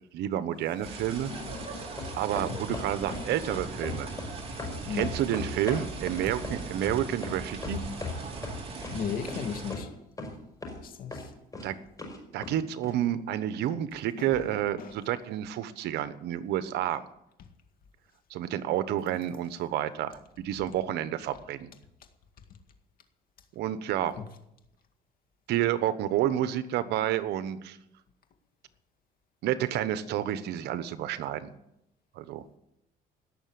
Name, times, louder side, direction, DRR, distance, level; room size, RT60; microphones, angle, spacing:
voice 1, 0.1-1.3 2.1-4.1 4.9-7.8 11.6-11.8 12.3-17.0 18.3-21.7 23.5-24.2 25.5-27.8 29.4-31.5 32.1-32.4, right 11 dB, 80° right, 1.1 m, -30 dB
sound 1, 0.8-9.7, right 3 dB, 35° right, 3.6 m, -39 dB
voice 2, 1.3-1.9 2.5-2.8 3.1-3.4 4.9-5.1 8.9-9.9 10.8-11.3 14.2-14.3 14.8-14.9, left 7 dB, 60° left, 2.1 m, -36 dB
sound 2, 2.0-3.2 3.5-4.3 4.6-8.2 8.4-9.0 9.3-9.4 9.7-9.8 10.2-10.3 10.6-10.8 11.1-11.6 12.0-12.5 12.8-12.9, left 3 dB, 20° left, 5.5 m, -37 dB
17.5 x 6.7 x 9.5 m
cardioid pair, 110°, 17 cm